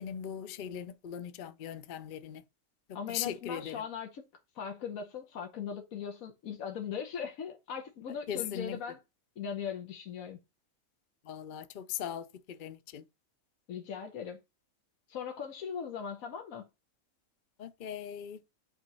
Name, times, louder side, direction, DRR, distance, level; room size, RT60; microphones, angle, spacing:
voice 1, 0.0-2.4 2.9-3.8 8.3-8.8 11.2-13.0 17.6-18.4, left 9 dB, 55° left, 0.6 m, -39 dB
voice 2, 2.9-4.2 4.5-9.0 9.4-10.4 13.7-14.4 15.1-16.6, left 7 dB, 85° left, 1.4 m, -39 dB
8.3 x 3.0 x 5.3 m
omnidirectional pair, 1.4 m